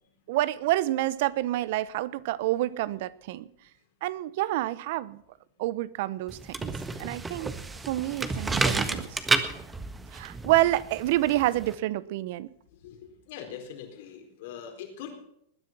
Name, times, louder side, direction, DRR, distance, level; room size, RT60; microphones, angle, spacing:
voice 1, 0.3-3.5 4.0-5.2 5.6-6.7 7.0-7.5 7.9-9.2 10.1-12.5, right 16 dB, 60° right, 19 dB, 0.8 m, -28 dB
sound 1, 6.3-11.7, right 3 dB, 15° right, 1.5 m, -31 dB
voice 2, 12.8-15.2, left 8 dB, 65° left, 4 dB, 4.3 m, -42 dB
20.0 x 9.9 x 6.0 m, 0.74 s
hypercardioid pair, 110°, 0 cm